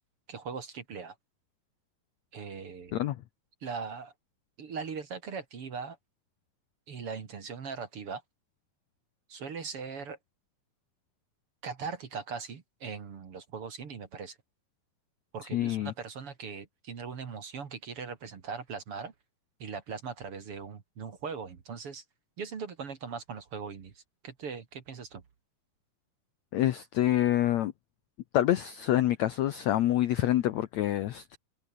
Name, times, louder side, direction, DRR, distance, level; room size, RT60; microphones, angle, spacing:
voice 1, 0.3-1.1 2.3-3.0 3.6-4.1 4.6-6.0 6.9-8.2 9.3-10.2 11.6-14.4 15.3-19.1 19.6-22.0 22.4-25.2, right 5 dB, 45° right, 2.6 m, -40 dB
voice 2, 2.9-3.2 15.5-15.9 26.5-27.7 28.3-31.4, left 13 dB, 70° left, 1.7 m, -27 dB
omnidirectional pair, 4.2 m